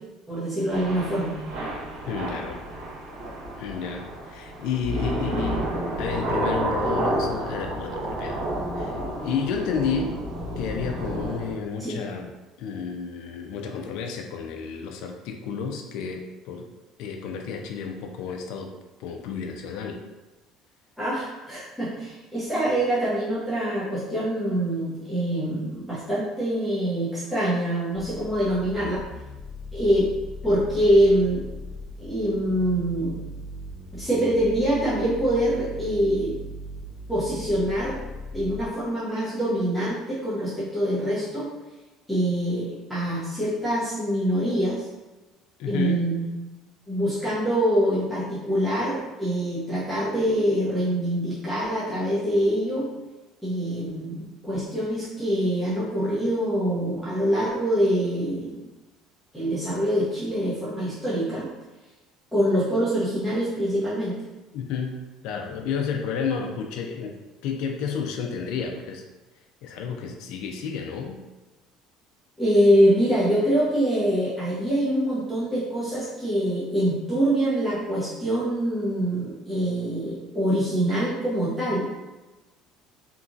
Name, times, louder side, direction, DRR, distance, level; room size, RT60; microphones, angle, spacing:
voice 1, 0.3-1.3 11.8-12.0 21.0-29.0 29.7-30.1 30.4-31.4 32.0-33.1 33.9-36.3 37.1-38.0 38.3-41.5 42.1-44.9 45.7-46.3 46.9-52.9 53.4-58.6 59.3-61.5 62.3-64.1 72.4-81.9, equal, ahead, -11 dB, 0.7 m, -24 dB
Thunder / Rain, 0.7-11.5, right 1 dB, 90° right, 1.1 m, -30 dB
voice 2, 2.0-2.6 3.6-5.6 6.0-8.4 8.8-10.2 10.6-12.3 12.6-16.7 17.0-18.7 19.0-20.0 45.6-46.0 64.5-67.1 67.4-69.0 69.6-71.2, left 6 dB, 75° left, 3 dB, 0.3 m, -31 dB
sound 1, 27.9-38.7, left 1 dB, 30° left, 0.9 m, -38 dB
2.9 x 2.4 x 2.5 m, 1.1 s
cardioid pair, 125°, 0 cm